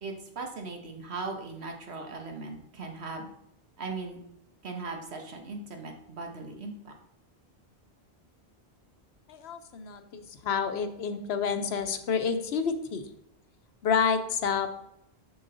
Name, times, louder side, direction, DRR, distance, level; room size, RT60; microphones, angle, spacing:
voice 1, 0.0-3.3 3.8-4.2 4.6-6.9, right 3 dB, 80° right, 4 dB, 1.4 m, -38 dB
voice 2, 9.3-13.0 13.8-14.7, left 6 dB, 80° left, 9 dB, 1.0 m, -29 dB
7.1 x 6.2 x 3.8 m, 0.78 s
omnidirectional pair, 1.1 m